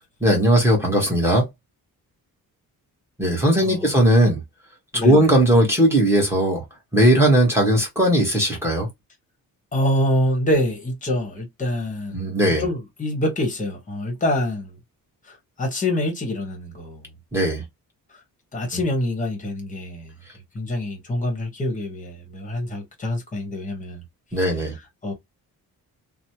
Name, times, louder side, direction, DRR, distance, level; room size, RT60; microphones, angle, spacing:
voice 1, 0.2-1.5 3.2-4.4 5.0-6.6 6.9-8.9 12.1-12.6 17.3-17.6 24.3-24.7, right 1 dB, 5° right, 1.1 m, -18 dB
voice 2, 3.6-3.9 4.9-5.3 9.7-12.3 12.6-14.8 15.3-17.0 18.1-18.2 18.5-20.1 20.5-24.0 24.4-24.7 25.0-25.1, left 1 dB, 20° left, 1.0 m, -26 dB
3.0 x 2.1 x 2.7 m
wide cardioid pair, 155°, 35 cm